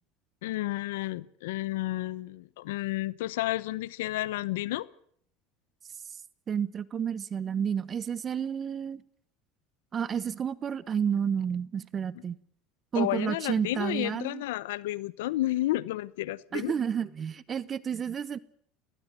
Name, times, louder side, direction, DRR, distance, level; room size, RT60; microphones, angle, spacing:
voice 1, 0.4-4.9 12.9-16.7, left 16 dB, 85° left, 0.9 m, -31 dB
voice 2, 6.5-9.0 9.9-12.4 12.9-14.4 16.5-18.4, right 7 dB, 35° right, 1.0 m, -30 dB
20.0 x 19.0 x 7.7 m
supercardioid pair, 105°, 0 cm